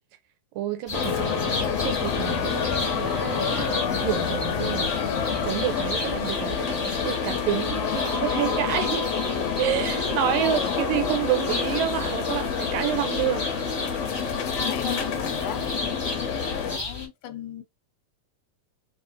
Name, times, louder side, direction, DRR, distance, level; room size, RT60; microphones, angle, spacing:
voice 1, 0.6-4.9 5.4-9.1 9.6-13.4, right 12 dB, 80° right, 2.5 m, -29 dB
sound 1, 0.9-16.8, left 6 dB, 65° left, 1.7 m, -28 dB
sound 2, 0.9-17.1, left 3 dB, 15° left, 1.0 m, -34 dB
sound 3, 2.2-8.2, left 4 dB, 35° left, 2.2 m, -40 dB
voice 2, 10.3-10.8 14.6-17.6, left 10 dB, 80° left, 2.2 m, -36 dB
5.6 x 2.9 x 2.8 m
omnidirectional pair, 3.9 m